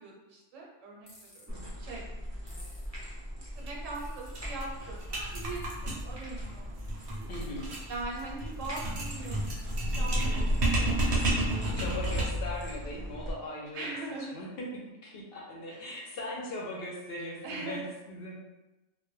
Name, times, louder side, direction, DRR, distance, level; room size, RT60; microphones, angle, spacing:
voice 1, 0.0-1.5 1.8-2.1 2.5-2.8 3.4-6.8 7.9-9.5 9.8-11.8 13.7-14.3 15.7-15.8 17.4-17.8, right 3 dB, 85° right, -2 dB, 1.0 m, -41 dB
sound 1, 1.1-1.4 2.5-2.8 3.9-4.4 5.4-5.6, left 1 dB, 20° left, 0.8 m, -52 dB
sound 2, 1.5-13.3, equal, 25° right, 0.4 m, -40 dB
sound 3, 3.6-3.7 4.0-4.1 4.4-12.5, right 1 dB, 55° right, 0.8 m, -31 dB
voice 2, 7.3-7.7 11.8-18.3, left 1 dB, 60° left, -4 dB, 0.6 m, -39 dB
2.2 x 2.2 x 3.0 m, 1.0 s
omnidirectional pair, 1.3 m